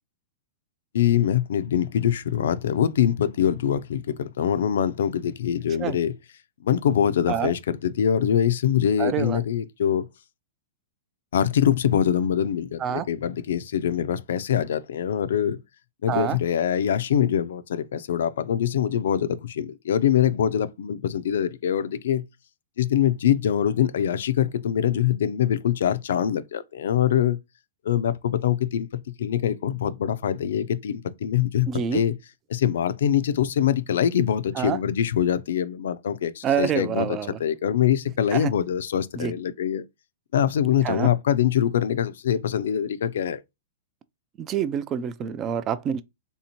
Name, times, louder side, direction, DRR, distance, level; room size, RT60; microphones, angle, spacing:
voice 1, 0.9-6.1 6.6-10.0 11.3-15.6 16.0-22.2 22.8-27.4 27.9-28.9 29.2-32.1 32.5-37.1 37.4-39.8 40.3-43.4, left 9 dB, 75° left, 0.4 m, -23 dB
voice 2, 9.0-9.4 12.8-13.1 16.1-16.4 31.7-32.0 34.5-34.8 36.4-37.4 38.3-38.5 39.2-39.3 40.8-41.1 44.4-46.0, right 9 dB, 30° right, 0.3 m, -27 dB
3.4 x 2.7 x 2.8 m
hypercardioid pair, 135°, 0 cm